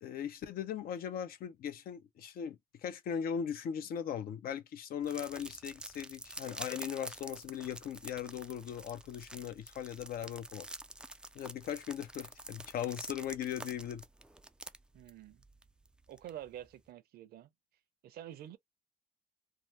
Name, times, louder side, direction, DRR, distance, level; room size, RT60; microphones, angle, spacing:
voice 1, 0.0-10.7 11.3-14.0, left 8 dB, 60° left, 0.7 m, -39 dB
sound 1, 5.0-16.7, right 1 dB, 5° right, 0.3 m, -48 dB
voice 2, 14.9-15.4 16.1-17.5 18.0-18.6, right 12 dB, 65° right, 0.6 m, -48 dB
2.7 x 2.1 x 3.2 m
cardioid pair, 110°, 17 cm